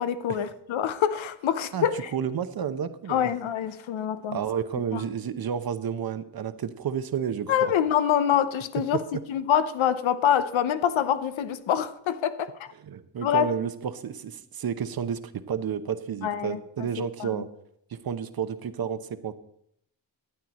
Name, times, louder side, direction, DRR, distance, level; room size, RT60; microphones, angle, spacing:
voice 1, 0.0-2.0 3.1-4.4 4.9-5.0 7.5-9.0 9.3-12.7 13.2-13.5 16.2-16.6 17.2-17.3, left 9 dB, 85° left, 0.8 m, -25 dB
voice 2, 2.1-3.3 4.3-7.7 8.9-9.0 12.8-17.5 17.9-19.3, right 7 dB, 50° right, 0.8 m, -31 dB
12.0 x 9.2 x 4.2 m
cardioid pair, 95°, 45 cm